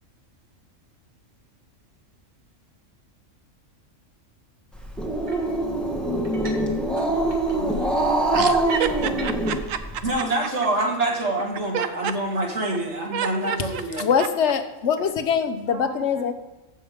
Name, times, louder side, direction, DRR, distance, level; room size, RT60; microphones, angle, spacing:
Growling, 4.7-10.1, right 1 dB, ahead, 1.2 m, -24 dB
sound 1, 5.3-5.6 6.2-6.7 7.0-9.6, equal, 35° right, 1.5 m, -41 dB
voice 1, 7.0-8.4 10.0-14.1, right 2 dB, 65° right, -1 dB, 2.2 m, -27 dB
voice 2, 8.3-10.2 11.7-12.1 13.1-13.8 14.2-14.3 15.7-16.3, right 8 dB, 85° right, 10 dB, 1.2 m, -30 dB
voice 3, 14.0-16.3, left 7 dB, 65° left, 8 dB, 1.1 m, -23 dB
15.0 x 6.2 x 3.6 m, 1.1 s
omnidirectional pair, 1.3 m